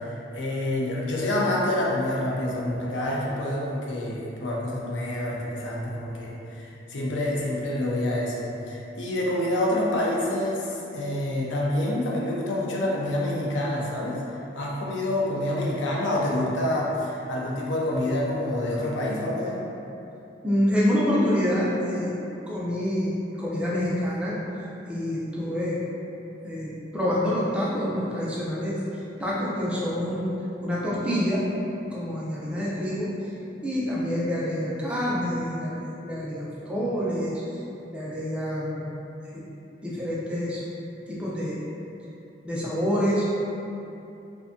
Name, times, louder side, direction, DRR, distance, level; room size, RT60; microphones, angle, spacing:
voice 1, 0.0-14.2 14.5-19.6, left 1 dB, 75° left, -4 dB, 0.5 m, -27 dB
voice 2, 20.4-22.1 22.5-23.1 23.4-24.4 24.9-25.8 26.4-30.3 30.6-31.4 31.8-33.3 33.6-37.6 37.9-39.0 39.3-39.4 39.8-40.6 41.1-41.6 42.4-43.3, equal, 5° right, -8 dB, 0.4 m, -27 dB
2.5 x 2.2 x 2.5 m, 2.9 s
head